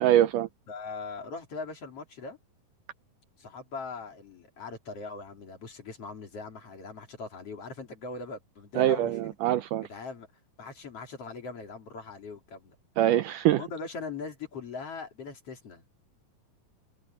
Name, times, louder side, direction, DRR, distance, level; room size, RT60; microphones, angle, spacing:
voice 1, 0.0-0.5 8.8-9.8 13.0-13.6, right 12 dB, 75° right, 2.1 m, -23 dB
voice 2, 0.7-2.4 3.4-9.4 9.9-10.3 10.6-12.8 13.6-16.0, left 4 dB, 45° left, 3.7 m, -40 dB
omnidirectional pair, 4.1 m